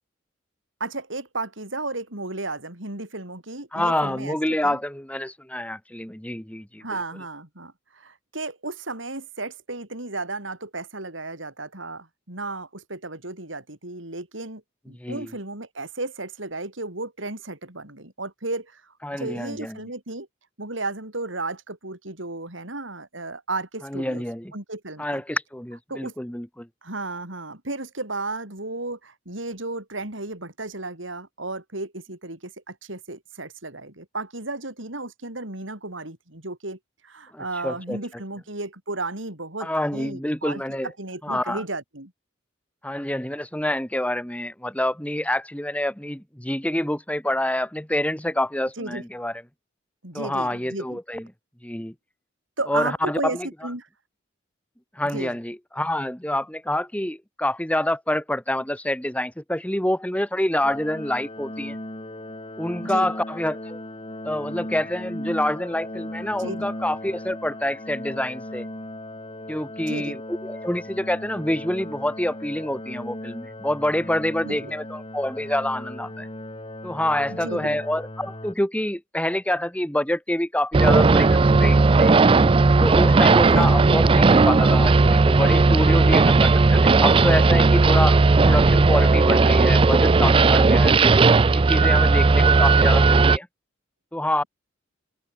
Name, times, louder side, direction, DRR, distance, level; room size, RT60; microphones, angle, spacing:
voice 1, 0.8-4.4 4.6-4.8 6.8-20.3 20.6-24.2 24.5-25.2 25.9-26.1 26.8-36.8 37.0-42.1 48.8-49.0 50.0-51.0 52.6-53.9 55.0-55.3 62.8-63.1 66.4-66.7 69.9-70.2 74.4-74.7 77.3-77.8 83.5-83.8, right 2 dB, 85° right, 6.6 m, -34 dB
voice 2, 3.7-6.8 15.0-15.3 19.0-19.8 23.8-24.5 25.0-26.7 37.3-38.0 39.6-40.9 41.2-41.6 42.8-49.4 50.1-51.3 51.6-51.9 52.7-53.5 54.9-61.8 62.6-63.8 64.2-68.7 69.5-76.3 76.8-82.1 82.8-91.2 91.5-93.5 94.1-94.4, left 1 dB, 5° left, 1.7 m, -27 dB
sound 1, 60.6-78.5, left 1 dB, 30° left, 4.4 m, -37 dB
sound 2, 80.7-93.4, right 3 dB, 30° right, 0.4 m, -16 dB
open air
head